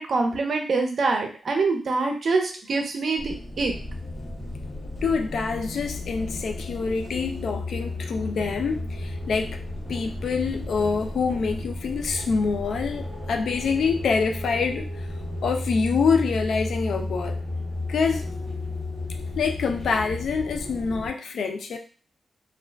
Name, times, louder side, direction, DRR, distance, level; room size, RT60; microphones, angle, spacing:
voice 1, 0.0-3.7, right 3 dB, 55° right, 3 dB, 0.6 m, -25 dB
sound 1, 3.2-21.1, left 1 dB, 50° left, 1.1 m, -33 dB
voice 2, 5.0-9.6 9.9-15.1 15.4-17.4 17.9-18.2 19.4-21.8, left 5 dB, 80° left, 4 dB, 0.4 m, -26 dB
2.4 x 2.2 x 3.3 m, 0.40 s
wide cardioid pair, 140°, 0 cm